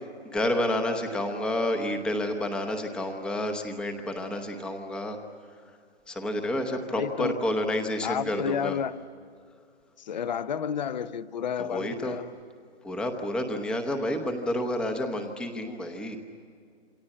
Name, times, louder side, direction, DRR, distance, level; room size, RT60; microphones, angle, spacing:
voice 1, 0.3-5.2 6.1-8.8 11.6-12.2 12.8-16.2, left 1 dB, 5° left, 0.9 m, -29 dB
voice 2, 7.0-7.5 8.0-9.0 10.1-12.2, left 7 dB, 40° left, 0.8 m, -31 dB
28.0 x 24.0 x 8.7 m
hypercardioid pair, 160°, 34 cm